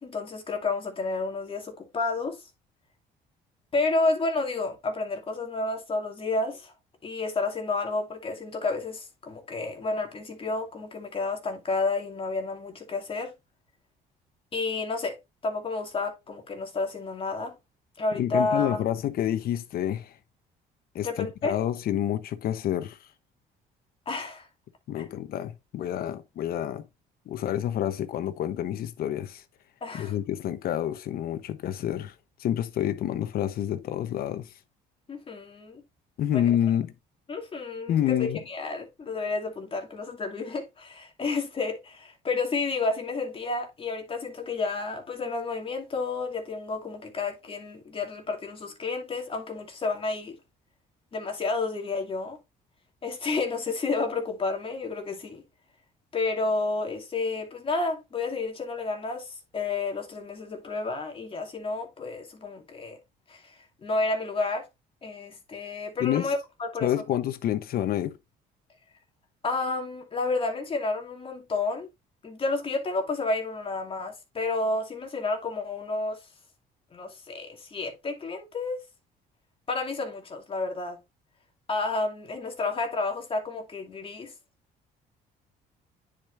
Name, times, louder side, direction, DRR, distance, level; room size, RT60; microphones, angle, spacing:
voice 1, 0.0-2.5 3.7-6.7 7.0-13.3 14.5-15.2 15.4-17.6 18.0-18.8 21.0-21.5 24.1-24.5 25.0-25.1 29.8-30.1 35.1-35.8 36.3-36.5 37.3-50.4 51.1-52.4 53.0-55.4 56.1-63.0 63.3-64.6 65.0-66.9 69.4-71.9 72.2-76.2 76.9-78.8 79.7-81.0 81.7-84.3, left 3 dB, 30° left, 2.5 m, -30 dB
voice 2, 18.1-20.2 20.9-23.1 24.9-26.9 27.3-29.4 29.9-34.5 36.2-36.9 37.9-38.4 66.0-66.3 66.8-68.2, left 11 dB, 65° left, 1.0 m, -28 dB
9.8 x 5.2 x 2.6 m
cardioid pair, 110°, 17 cm